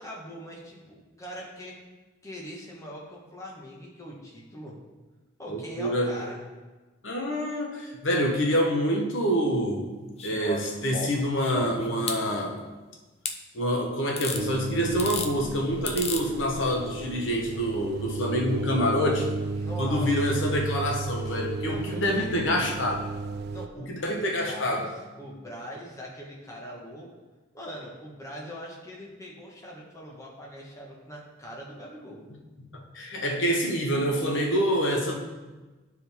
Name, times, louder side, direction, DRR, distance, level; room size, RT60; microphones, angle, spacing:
voice 1, 0.0-1.7 2.2-4.8 5.4-6.4 19.5-20.4 21.6-22.8 23.5-24.9 25.2-27.1 27.5-32.2, equal, 15° left, -3 dB, 1.3 m, -41 dB
voice 2, 5.5-6.2 7.0-9.9 10.2-12.6 13.5-19.3 19.8-23.0 23.8-24.9 32.7-35.2, equal, 70° left, 1 dB, 1.0 m, -26 dB
sound 1, 10.2-12.2 13.3-13.4 14.2-14.4 14.9-15.3 15.9-16.2 17.5-17.6, left 4 dB, 30° left, 0.5 m, -34 dB
sound 2, 14.3-23.7, right 4 dB, 50° right, 0.3 m, -34 dB
11.5 x 4.7 x 3.5 m, 1.2 s
head